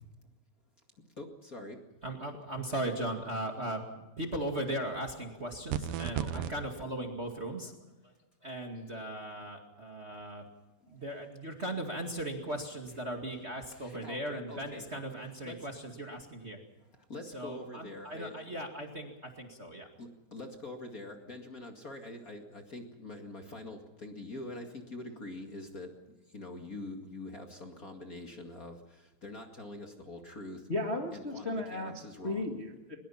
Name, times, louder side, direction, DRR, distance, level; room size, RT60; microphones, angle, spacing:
voice 1, 1.2-1.8 6.1-6.5 13.7-15.0 15.4-15.7 17.1-18.4 20.0-30.6 31.1-32.5, left 2 dB, 40° left, 3 dB, 1.2 m, -45 dB
voice 2, 2.0-7.7 8.0-8.1 8.4-10.4 10.9-16.6 17.3-19.9, right 1 dB, 35° right, 2 dB, 1.0 m, -38 dB
sound 1, 5.7-6.5, right 10 dB, 75° right, 2.1 m, -33 dB
voice 3, 30.7-32.9, left 2 dB, 85° left, 1 dB, 0.5 m, -35 dB
23.0 x 21.5 x 5.8 m, 1.0 s
omnidirectional pair, 5.1 m